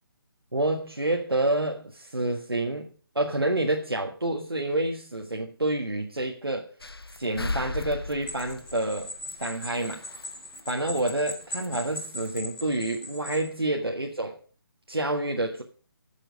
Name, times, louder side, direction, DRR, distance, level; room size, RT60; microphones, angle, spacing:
voice 1, 0.5-6.7 7.2-10.0 10.7-14.4 14.9-15.6, right 2 dB, 90° right, 1 dB, 1.5 m, -28 dB
sound 1, 6.8-10.3 10.6-10.7 11.0-12.0 12.2-12.4, left 3 dB, 85° left, 0.6 m, -37 dB
sound 2, 8.3-13.5, left 1 dB, 5° left, 3.2 m, -39 dB
13.5 x 7.5 x 5.1 m, 0.42 s
figure-of-eight pair, 145°, 12 cm